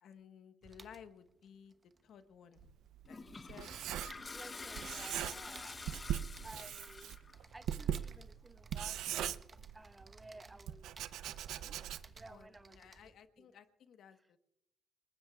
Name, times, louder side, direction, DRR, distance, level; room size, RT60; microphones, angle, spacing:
voice 1, 0.0-1.8 2.0-2.7 3.1-3.7 12.3-14.4, left 8 dB, 70° left, 1.2 m, -57 dB
sound 1, 0.6-2.9 3.1-13.3, right 4 dB, 30° right, 1.0 m, -58 dB
Writing, 2.6-4.5 4.7-5.6 5.9-10.0 10.7-12.3, right 11 dB, 85° right, 0.6 m, -40 dB
Toilet flush, 3.1-7.3, left 3 dB, 30° left, 0.8 m, -48 dB
voice 2, 4.3-5.9 6.4-7.2 7.5-9.4 9.7-10.9 11.5-11.8 12.2-12.8 13.4-13.5, right 2 dB, 15° right, 0.4 m, -54 dB
29.0 x 19.5 x 2.4 m
cardioid pair, 90°, 0 cm